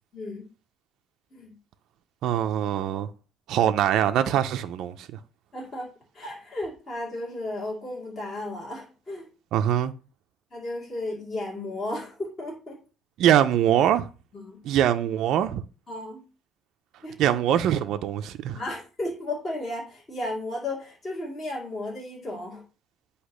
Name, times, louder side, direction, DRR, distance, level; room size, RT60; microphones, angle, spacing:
voice 1, 0.1-0.4 1.3-1.5 5.5-5.9 6.1-9.3 10.5-12.8 14.3-14.6 15.9-16.2 17.0-17.1 18.5-22.6, left 1 dB, 25° left, 2.3 m, -34 dB
voice 2, 2.2-3.1 3.5-5.1 9.5-9.9 13.2-14.1 14.6-15.6 17.2-18.6, right 10 dB, 55° right, 0.5 m, -23 dB
8.2 x 2.8 x 6.1 m
cardioid pair, 175°, 0 cm